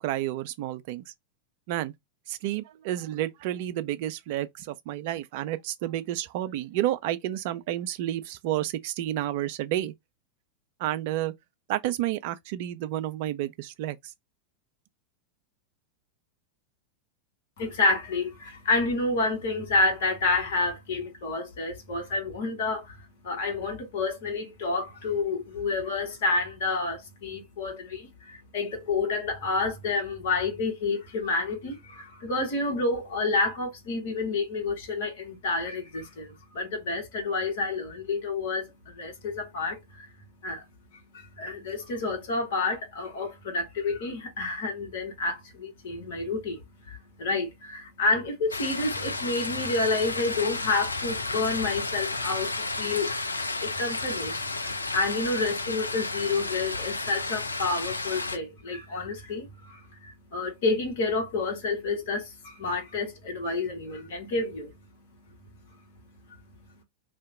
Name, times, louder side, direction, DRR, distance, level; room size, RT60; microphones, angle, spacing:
voice 1, 0.0-1.0 1.7-1.9 2.3-9.9 10.8-11.3 11.7-14.0, right 13 dB, 50° right, 0.4 m, -30 dB
voice 2, 17.6-40.1 40.4-40.6 40.9-64.8 65.2-66.8, left 3 dB, 55° left, 1.1 m, -29 dB
sound 1, 48.5-58.4, left 3 dB, 80° left, 0.3 m, -32 dB
2.7 x 2.1 x 3.6 m
figure-of-eight pair, 90°, 0 cm